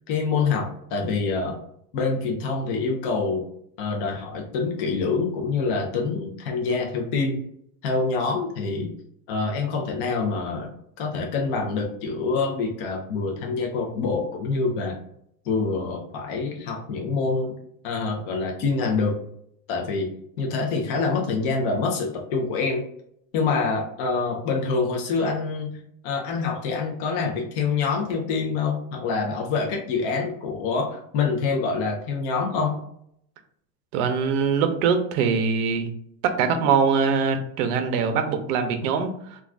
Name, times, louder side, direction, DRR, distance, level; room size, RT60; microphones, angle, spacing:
voice 1, 0.1-1.6 1.9-3.5 3.8-7.4 7.8-8.9 9.3-10.7 11.0-15.0 15.4-17.5 17.8-19.2 19.7-20.1 20.4-22.8 23.3-32.8, left 4 dB, 40° left, 0 dB, 0.4 m, -26 dB
voice 2, 33.9-35.9 36.2-39.4, right 6 dB, 65° right, 7 dB, 0.6 m, -23 dB
2.4 x 2.3 x 3.2 m, 0.70 s
supercardioid pair, 160°, 49 cm